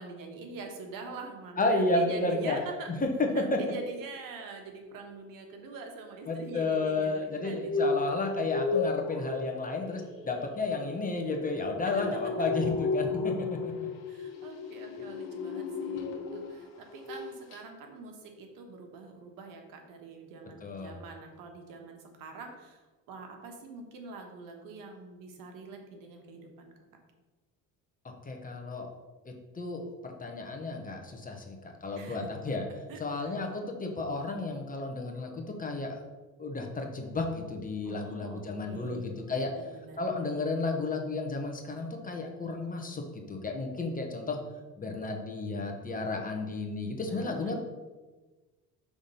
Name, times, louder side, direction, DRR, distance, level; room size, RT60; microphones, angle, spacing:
voice 1, 0.0-2.9 3.3-7.9 11.9-12.1 12.4-12.5 14.1-22.8 23.1-26.7 32.0-32.3 32.7-33.3 37.8-39.0 39.4-40.2 47.1-47.6, right 3 dB, 75° right, 3 dB, 1.2 m, -44 dB
voice 2, 1.6-2.6 3.0-3.6 6.2-13.9 20.6-21.0 28.0-28.9 29.2-32.6 33.0-36.0 36.4-39.5 40.0-44.4 44.8-47.6, left 3 dB, 25° left, 2 dB, 1.1 m, -32 dB
sound 1, 7.4-16.6 16.9-17.2 17.5-17.6, left 4 dB, 80° left, 1.2 m, -34 dB
5.9 x 3.6 x 5.4 m, 1.2 s
cardioid pair, 100°, 33 cm